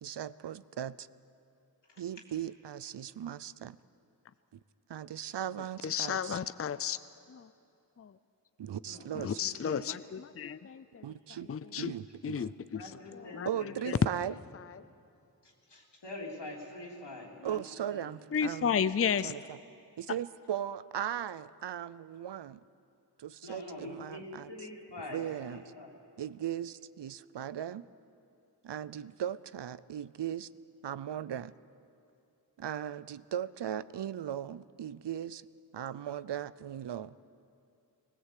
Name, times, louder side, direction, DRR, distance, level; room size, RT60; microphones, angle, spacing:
voice 1, 0.0-1.1 2.0-3.8 4.9-6.4 8.6-9.4 11.0-11.5 11.8-12.4 13.5-14.3 17.4-18.8 19.2-19.6 20.0-22.6 23.2-24.5 25.1-25.6 26.2-27.9 28.6-30.5 30.8-31.5 32.6-35.4 35.7-37.1, right 10 dB, 90° right, 17 dB, 0.6 m, -38 dB
voice 2, 5.8-7.0 7.3-7.5 8.0-8.1 9.2-11.0 11.5-11.9 12.2-12.8 13.3-13.5 13.9-14.0 18.3-19.3, left 7 dB, 35° left, 15 dB, 0.5 m, -32 dB
voice 3, 8.8-9.9 12.7-14.1 15.4-17.6 17.9-18.1 23.4-26.0, left 2 dB, 90° left, -2 dB, 3.5 m, -45 dB
20.5 x 19.5 x 8.4 m, 2.7 s
wide cardioid pair, 80°, 40 cm